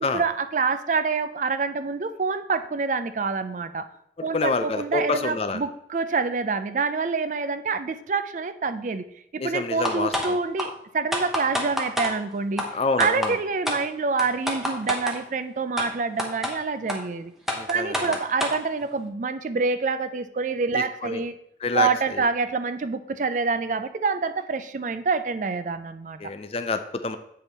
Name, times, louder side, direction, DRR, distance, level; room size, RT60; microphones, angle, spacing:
voice 1, 0.1-3.9 4.2-9.0 9.3-12.7 13.0-17.3 17.7-21.3 21.7-26.2, right 4 dB, 45° right, 12 dB, 0.4 m, -26 dB
voice 2, 4.3-5.6 9.4-10.4 12.7-13.3 17.5-18.0 20.7-21.2 21.6-22.2 26.2-27.2, left 3 dB, 35° left, 9 dB, 0.5 m, -27 dB
sound 1, 9.9-10.3 10.6-10.7 11.1-12.1 12.6-12.7 13.0-13.3 13.7-13.8 14.2-15.2 15.8-15.9 16.2-16.5 16.9-17.0 17.5-18.6, left 1 dB, ahead, 0.8 m, -27 dB
7.6 x 5.3 x 4.1 m, 0.73 s
head